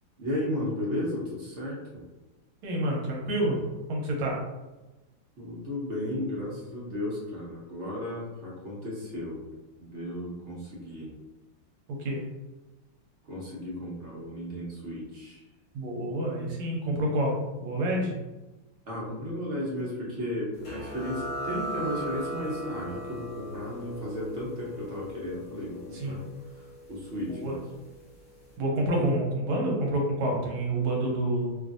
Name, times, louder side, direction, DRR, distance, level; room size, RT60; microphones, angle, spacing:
voice 1, 0.2-2.0 5.4-9.5 9.8-11.1 13.3-15.4 18.8-26.2 26.5-27.6, left 1 dB, 55° right, -6 dB, 0.8 m, -34 dB
voice 2, 2.6-4.4 11.9-12.2 15.7-18.1 25.9-26.2 27.4-27.6 28.6-31.6, right 1 dB, 80° right, -1 dB, 1.5 m, -28 dB
sound 1, 20.6-27.9, equal, 60° left, 0.9 m, -38 dB
3.2 x 2.5 x 2.5 m, 1.1 s
omnidirectional pair, 2.3 m